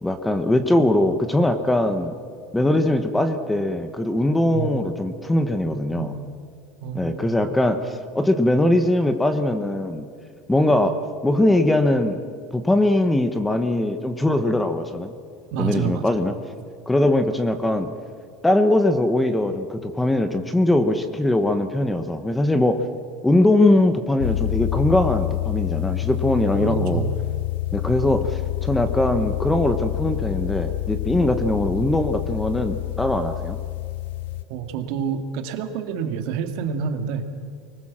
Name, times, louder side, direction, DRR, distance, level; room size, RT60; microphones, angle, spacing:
voice 1, 0.0-2.1 2.5-6.1 6.9-10.1 10.5-12.2 12.5-15.1 15.6-16.3 16.9-17.9 18.4-22.8 23.2-27.0 27.7-33.6, left 1 dB, 5° left, 9 dB, 1.0 m, -21 dB
voice 2, 4.5-4.9 5.9-6.1 6.8-7.4 15.5-16.1 26.6-27.1 34.5-37.3, right 7 dB, 55° right, 7 dB, 2.1 m, -28 dB
sound 1, 24.2-34.4, left 16 dB, 85° left, 0.7 m, -27 dB
24.5 x 20.0 x 7.5 m, 2.2 s
cardioid pair, 170°, 0 cm